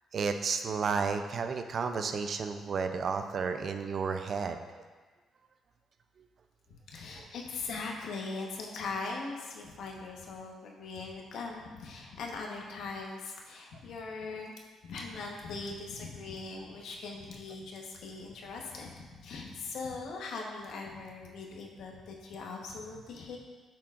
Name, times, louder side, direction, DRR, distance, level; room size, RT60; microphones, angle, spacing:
voice 1, 0.1-4.8 7.1-7.3 13.7-13.8, right 5 dB, 50° right, 7 dB, 0.5 m, -32 dB
voice 2, 6.9-14.5 14.8-23.4, left 3 dB, 75° left, 0 dB, 1.1 m, -40 dB
8.7 x 5.9 x 2.5 m, 1.4 s
cardioid pair, 90°, 0 cm